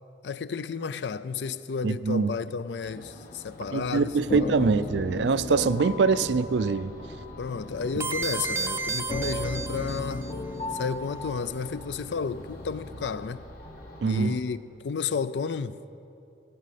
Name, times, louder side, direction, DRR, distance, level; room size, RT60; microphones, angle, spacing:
voice 1, 0.2-4.7 7.4-10.3 10.7-13.5 14.0-15.8, left 5 dB, 75° left, 0.4 m, -32 dB
voice 2, 1.8-2.3 3.7-6.9 14.0-14.4, right 4 dB, 75° right, 0.4 m, -24 dB
sound 1, 2.8-14.3, equal, 55° left, 1.9 m, -47 dB
sound 2, 4.3-13.9, left 2 dB, 35° left, 0.7 m, -37 dB
sound 3, 8.0-10.3, right 3 dB, 15° right, 0.5 m, -32 dB
17.5 x 6.2 x 8.3 m
head